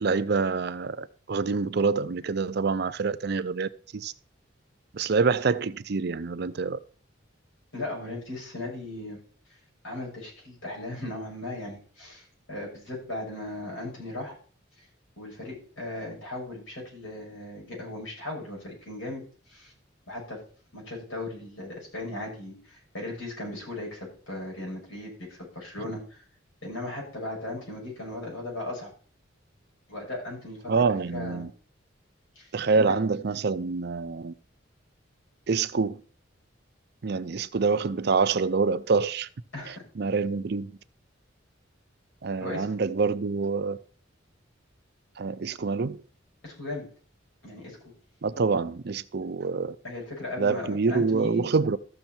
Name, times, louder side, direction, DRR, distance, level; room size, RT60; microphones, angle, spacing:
voice 1, 0.0-4.1 4.9-6.8 30.7-31.5 32.5-34.3 35.5-36.0 37.0-39.3 39.7-40.7 42.2-43.8 45.2-46.0 48.2-49.8 50.4-51.8, right 4 dB, 55° right, 0.5 m, -26 dB
voice 2, 7.7-9.2 9.8-14.4 14.8-14.9 15.2-19.7 20.1-20.4 20.7-26.2 26.6-28.9 29.9-30.8 31.1-31.4 32.4-33.0 39.5-39.8 42.4-42.7 46.4-46.9 47.4-47.9 49.8-51.5, left 2 dB, 80° left, 6.9 m, -37 dB
14.0 x 6.5 x 4.4 m
head